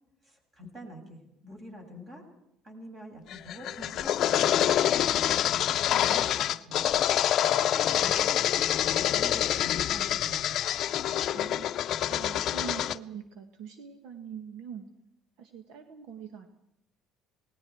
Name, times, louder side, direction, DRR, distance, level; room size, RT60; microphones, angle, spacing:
voice 1, 0.2-2.2 2.6-4.8 5.3-10.6, left 1 dB, 25° right, 3 dB, 7.0 m, -45 dB
sound 1, 3.3-13.0, left 11 dB, 50° left, 0.6 m, -26 dB
voice 2, 11.3-14.9 15.4-16.5, right 8 dB, 75° right, 7 dB, 1.9 m, -43 dB
28.0 x 19.5 x 4.7 m, 0.85 s
cardioid pair, 140°, 0 cm